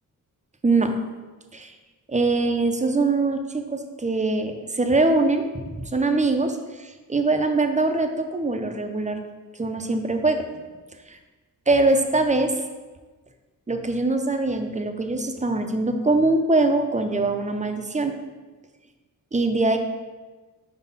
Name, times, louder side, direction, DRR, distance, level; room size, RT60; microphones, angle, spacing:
voice 1, 0.6-0.9 1.5-1.7 2.1-5.4 5.9-9.2 9.6-10.4 11.1-11.2 11.7-12.5 13.7-18.1 19.3-19.8, right 2 dB, 20° right, 5 dB, 0.6 m, -22 dB
4.8 x 4.1 x 5.4 m, 1.3 s
cardioid pair, 90°, 35 cm